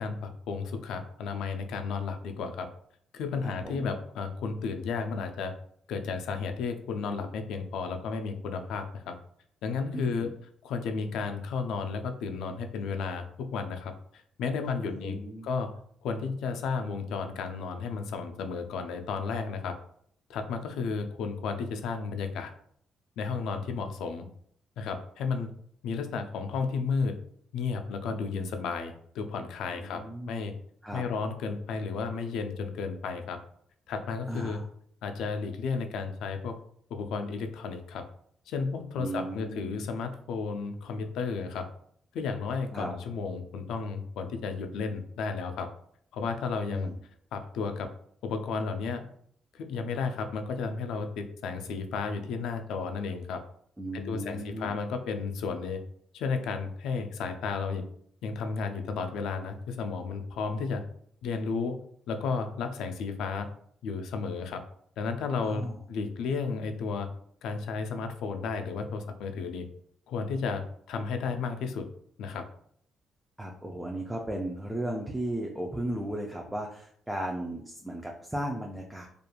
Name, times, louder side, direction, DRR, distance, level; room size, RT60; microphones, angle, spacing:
voice 1, 0.0-2.7 3.1-5.5 5.9-9.2 9.6-10.3 10.6-15.2 15.4-15.7 16.0-19.8 20.3-22.5 23.2-24.3 24.8-25.5 25.8-27.2 27.5-30.5 30.9-33.4 33.9-34.6 35.0-36.6 36.9-38.0 38.5-41.7 42.1-45.7 46.1-46.9 47.3-47.9 48.2-49.1 49.5-53.4 53.9-55.8 56.1-57.8 58.2-60.8 61.2-61.8 62.1-63.5 63.8-64.6 65.0-67.1 67.4-69.7 70.1-71.9 72.2-72.5, left 5 dB, 85° left, 7 dB, 0.3 m, -33 dB
voice 2, 3.4-3.9 9.9-10.3 14.8-15.5 29.7-30.4 30.8-31.0 34.3-34.6 39.0-39.8 42.7-42.9 46.7-46.9 53.8-54.7 65.4-65.8 73.4-79.1, right 1 dB, 10° right, 0 dB, 0.4 m, -35 dB
2.9 x 2.4 x 2.2 m, 0.64 s
cardioid pair, 90°, 0 cm